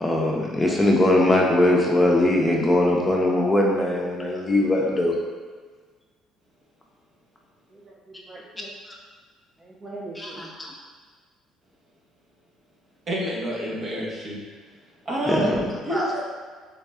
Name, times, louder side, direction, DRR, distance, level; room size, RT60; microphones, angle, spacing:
voice 1, 0.0-5.1 10.2-10.5 15.3-15.7, left 1 dB, 15° left, -2 dB, 0.7 m, -21 dB
voice 2, 7.7-8.7 9.6-10.4 15.1-15.5 15.8-16.1, right 1 dB, 30° right, -6 dB, 0.7 m, -36 dB
voice 3, 13.1-14.4 15.1-15.6 15.8-16.2, equal, 45° right, -3 dB, 1.1 m, -27 dB
3.6 x 3.1 x 3.5 m, 1.5 s
hypercardioid pair, 65°, 0 cm